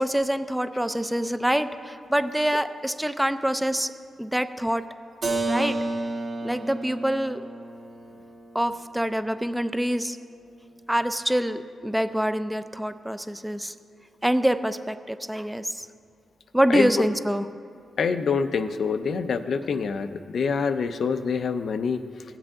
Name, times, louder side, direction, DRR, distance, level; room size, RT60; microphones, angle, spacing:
voice 1, 0.0-3.9 4.2-4.9 5.5-5.8 6.4-7.4 8.5-10.2 10.9-13.7 14.2-15.9 16.5-17.5, equal, 5° right, 10 dB, 0.5 m, -25 dB
Keyboard (musical), 5.2-10.8, right 2 dB, 60° right, 1.8 m, -33 dB
voice 2, 18.0-22.0, left 5 dB, 70° left, 9 dB, 0.5 m, -26 dB
17.0 x 7.4 x 3.7 m, 2.3 s
cardioid pair, 65°, 0 cm